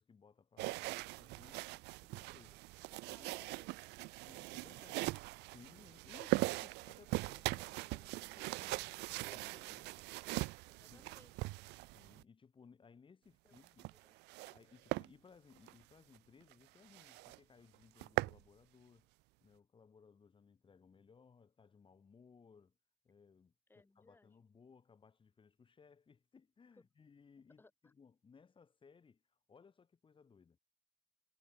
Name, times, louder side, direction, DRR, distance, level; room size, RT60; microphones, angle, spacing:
voice 1, 0.0-2.6 3.1-3.3 4.2-5.0 5.4-9.9 10.9-11.1 11.9-13.9 14.5-19.1 19.4-22.8 23.0-30.6, left 5 dB, 30° left, 2.4 m, -63 dB
sound 1, 0.6-12.2 13.5-14.6 14.9-15.1 15.6-15.7 16.1-16.2 16.5-16.6 16.9-17.4 17.7-18.4, right 22 dB, 85° right, 0.4 m, -41 dB
voice 2, 2.9-3.9 4.6-4.9 9.9-11.5 13.4-13.6 13.9-14.2 23.7-24.3 26.8-26.9 27.6-27.9, left 2 dB, 10° left, 2.5 m, -67 dB
cardioid pair, 110°, 17 cm